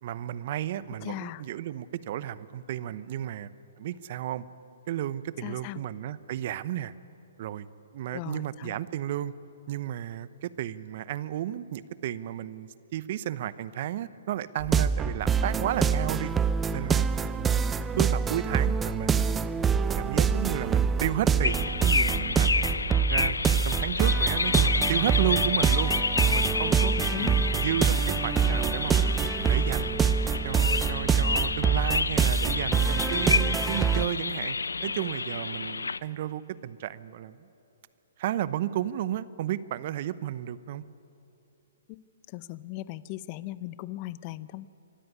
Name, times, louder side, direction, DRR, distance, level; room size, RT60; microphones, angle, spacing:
voice 1, 0.0-3.5 3.8-4.4 4.9-6.9 7.4-7.7 7.9-9.3 9.7-16.3 16.7-17.1 18.0-19.6 20.0-22.5 23.0-23.4 23.6-29.1 29.4-30.0 30.4-34.6 34.8-37.4 38.2-40.8, right 12 dB, 50° right, 16 dB, 0.8 m, -33 dB
voice 2, 1.0-1.4 5.4-5.8 8.1-8.8 27.0-27.4 41.9-42.0 42.3-44.7, left 17 dB, 35° left, 17 dB, 0.6 m, -38 dB
sound 1, 14.6-34.0, right 6 dB, 15° right, 0.6 m, -25 dB
sound 2, 21.4-36.0, left 4 dB, 85° left, 0.6 m, -29 dB
25.0 x 13.5 x 9.6 m, 2.8 s
hypercardioid pair, 135°, 0 cm